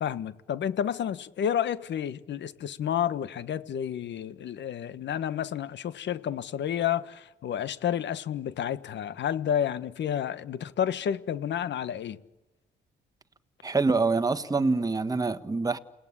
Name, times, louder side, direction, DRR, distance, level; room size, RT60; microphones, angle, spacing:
voice 1, 0.0-12.2, left 9 dB, 65° left, 1.4 m, -30 dB
voice 2, 13.6-15.8, right 3 dB, 20° right, 1.5 m, -25 dB
28.5 x 19.0 x 9.9 m
cardioid pair, 90°, 20 cm